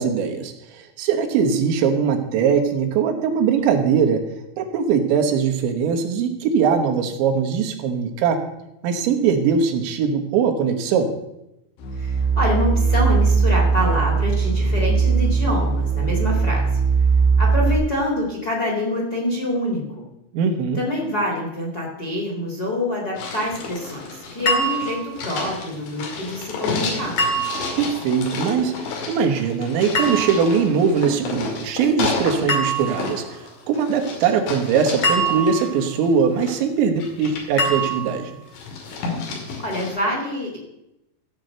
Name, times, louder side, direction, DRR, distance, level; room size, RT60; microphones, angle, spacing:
voice 1, 0.0-4.2 4.6-8.4 8.8-11.1 20.3-20.8 27.8-33.2 33.7-38.3, right 6 dB, 85° right, 5 dB, 3.6 m, -21 dB
sound 1, 11.8-17.8, right 5 dB, 70° left, 3.1 m, -19 dB
voice 2, 12.0-16.7 17.4-20.1 20.8-27.2 39.2-39.4 39.6-40.6, left 1 dB, 30° left, 0 dB, 2.1 m, -26 dB
sound 2, 23.2-32.5 32.7-36.6 37.0-38.1 38.5-39.9, left 4 dB, 85° left, 4.7 m, -31 dB
sound 3, 24.5-25.2 27.2-27.9 29.9-30.6 32.5-33.2 35.0-35.9 37.6-38.3, right 1 dB, 45° left, 2.5 m, -24 dB
15.5 x 5.3 x 7.8 m, 0.88 s
omnidirectional pair, 5.1 m